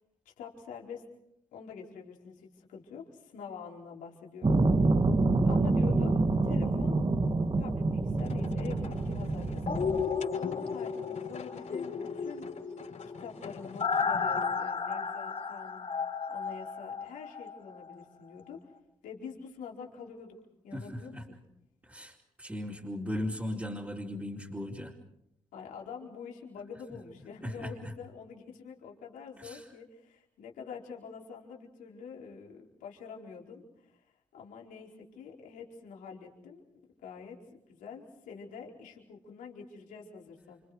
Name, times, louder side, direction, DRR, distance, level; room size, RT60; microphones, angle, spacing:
voice 1, 0.2-1.0 1.5-4.6 5.4-7.0 7.5-9.8 10.4-12.5 13.0-15.9 16.3-18.6 19.0-20.4 20.6-21.4 25.5-36.6 37.0-37.4 37.7-40.6, left 6 dB, 85° left, -1 dB, 4.5 m, -46 dB
sound 1, 4.4-10.0, right 3 dB, 40° right, 2.1 m, -27 dB
sound 2, 8.2-14.6, left 4 dB, 65° left, 6.2 m, -44 dB
sound 3, 9.7-17.6 17.9-18.0, left 5 dB, 45° left, 5.3 m, -33 dB
voice 2, 20.7-21.2 21.8-24.9 27.4-27.9 29.4-29.7, left 1 dB, 15° right, -4 dB, 4.4 m, -37 dB
30.0 x 26.5 x 4.9 m, 0.77 s
supercardioid pair, 45°, 13 cm